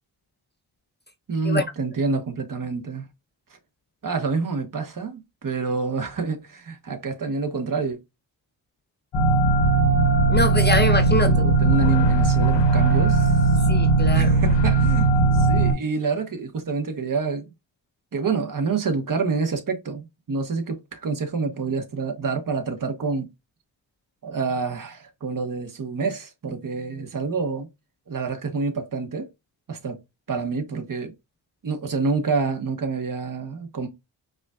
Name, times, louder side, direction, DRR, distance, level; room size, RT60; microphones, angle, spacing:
voice 1, 1.3-3.1 4.0-8.0 11.2-13.3 14.1-17.5 18.1-23.3 24.2-27.7 28.1-29.3 29.7-30.0 30.3-31.1 31.6-33.9, right 4 dB, 45° right, 1.2 m, -27 dB
sound 1, 9.1-15.7, right 3 dB, 65° left, 1.0 m, -18 dB
voice 2, 10.3-11.6 13.7-14.4, left 2 dB, 20° left, 0.6 m, -24 dB
4.9 x 2.5 x 2.3 m
supercardioid pair, 50°, 46 cm